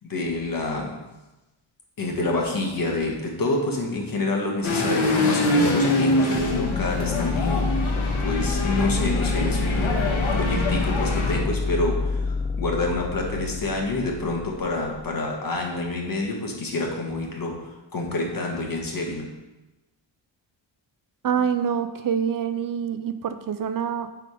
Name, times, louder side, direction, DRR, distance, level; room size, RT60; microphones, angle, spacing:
voice 1, 0.0-1.0 2.0-19.3, left 2 dB, 45° left, 1 dB, 1.5 m, -28 dB
sound 1, 4.6-11.4, left 2 dB, 90° left, 1.5 m, -24 dB
sound 2, 6.4-15.1, left 3 dB, 20° left, 0.3 m, -28 dB
voice 2, 21.2-24.1, right 7 dB, 45° right, 11 dB, 0.5 m, -26 dB
10.5 x 3.8 x 4.9 m, 1.1 s
wide cardioid pair, 155°, 47 cm